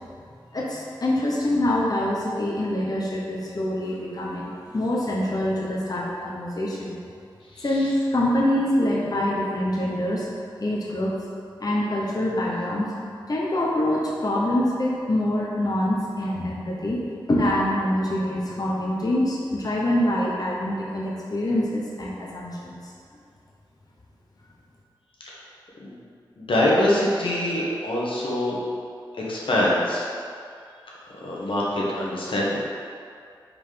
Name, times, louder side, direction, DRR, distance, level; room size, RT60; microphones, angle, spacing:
voice 1, 0.5-7.0 7.6-10.3 10.6-11.2 11.6-12.9 13.3-17.0 17.3-22.9, left 1 dB, 45° left, -5 dB, 0.9 m, -25 dB
voice 2, 26.4-28.6 29.3-30.0 31.2-32.6, left 1 dB, 80° left, -6 dB, 1.1 m, -24 dB
5.0 x 3.8 x 5.1 m, 2.3 s
wide cardioid pair, 65°, 9 cm